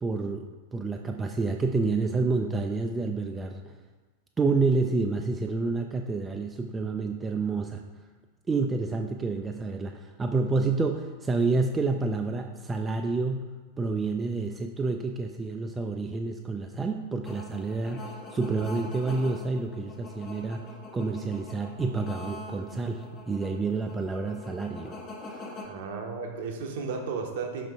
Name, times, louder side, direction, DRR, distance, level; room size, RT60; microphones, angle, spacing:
voice 1, 0.0-3.7 4.4-7.8 8.5-20.6 20.9-25.0 25.3-25.4, right 3 dB, 15° right, 4 dB, 0.3 m, -29 dB
sound 1, 17.2-25.6, left 2 dB, 30° left, 0.8 m, -43 dB
voice 2, 25.6-27.7, right 5 dB, 55° right, 4 dB, 0.8 m, -34 dB
5.5 x 5.1 x 3.5 m, 1.3 s
figure-of-eight pair, 90°, 0 cm